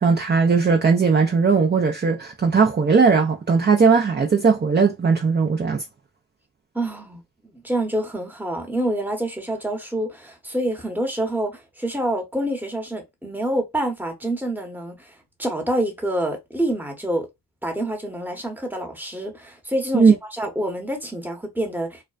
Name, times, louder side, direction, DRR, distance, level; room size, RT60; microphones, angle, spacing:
voice 1, 0.0-5.8 19.9-20.1, right 5 dB, 25° right, 0.4 m, -18 dB
voice 2, 6.7-17.3 17.6-22.0, right 1 dB, 5° right, 0.9 m, -27 dB
2.4 x 2.1 x 2.4 m
cardioid pair, 45°, 48 cm